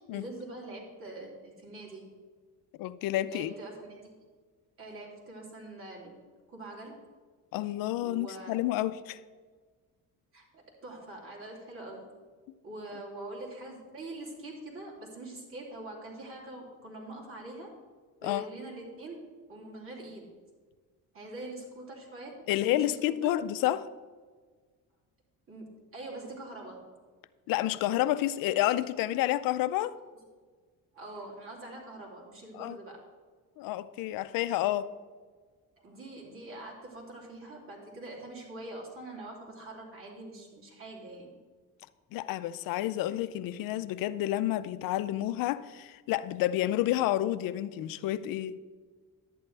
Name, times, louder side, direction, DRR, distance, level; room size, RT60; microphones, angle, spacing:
voice 1, 0.0-2.1 3.3-4.2 4.8-6.1 6.5-7.0 8.0-8.5 10.3-12.1 12.6-17.7 18.2-19.2 19.5-20.3 21.1-23.3 25.5-26.8 30.9-33.0 35.8-41.3, right 2 dB, 40° right, 3.0 m, -44 dB
voice 2, 2.8-3.5 7.5-9.2 18.2-18.5 22.5-23.9 27.5-30.0 32.5-32.8 33.6-34.9 42.1-48.6, left 14 dB, 85° left, 0.5 m, -30 dB
11.5 x 9.5 x 3.3 m
cardioid pair, 115°, 33 cm